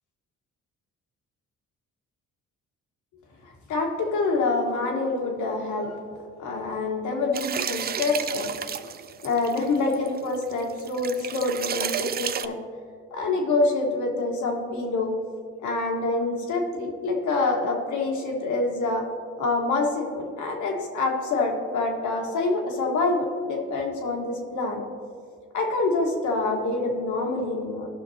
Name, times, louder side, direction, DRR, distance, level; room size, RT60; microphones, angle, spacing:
voice 1, 3.7-6.0 6.4-8.5 9.2-12.6 13.1-15.1 15.6-19.0 19.4-24.8 25.5-27.9, left 3 dB, 75° left, 1 dB, 1.6 m, -26 dB
sound 1, 7.3-12.5, right 8 dB, 35° right, 0.4 m, -32 dB
15.5 x 5.8 x 2.9 m, 2.1 s
cardioid pair, 90°, 30 cm